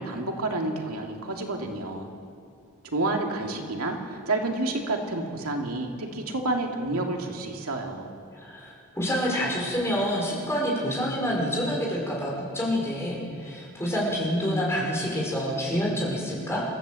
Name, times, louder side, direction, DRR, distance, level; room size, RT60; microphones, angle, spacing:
voice 1, 0.0-2.1 2.8-8.1, right 2 dB, 90° right, 1 dB, 2.5 m, -29 dB
voice 2, 8.3-16.6, equal, 10° left, -3 dB, 5.4 m, -27 dB
28.0 x 14.5 x 7.7 m, 2.3 s
head